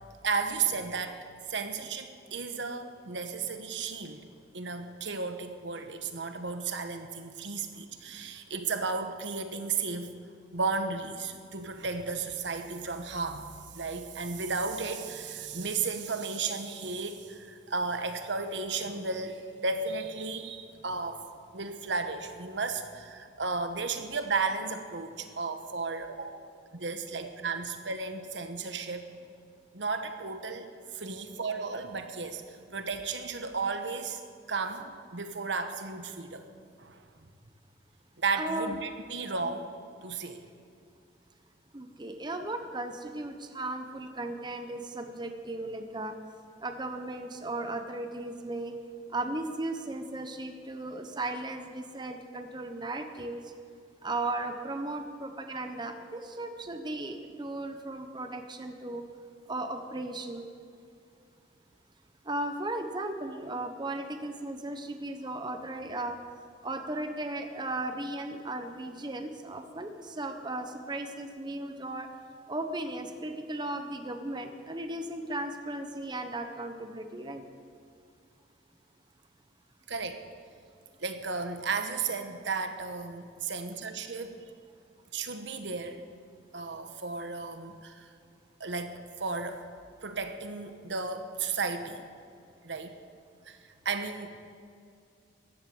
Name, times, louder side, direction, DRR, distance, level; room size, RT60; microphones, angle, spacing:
voice 1, 0.2-4.2 4.5-10.1 10.5-21.3 21.5-29.1 29.7-34.2 34.5-36.4 36.8-37.0 38.2-39.7 40.0-40.4 79.9-80.2 81.0-84.4 85.1-86.0 86.5-88.1 88.6-89.7 90.0-92.1 92.6-93.0 93.4-93.6 93.8-94.3, right 4 dB, 75° right, 8 dB, 1.2 m, -34 dB
voice 2, 38.4-38.8 41.7-46.1 46.6-48.7 49.1-53.4 54.0-59.0 59.5-60.5 62.2-66.2 66.6-72.1 72.5-77.4, right 2 dB, 25° right, 6 dB, 1.0 m, -36 dB
14.5 x 10.5 x 7.8 m, 2.4 s
head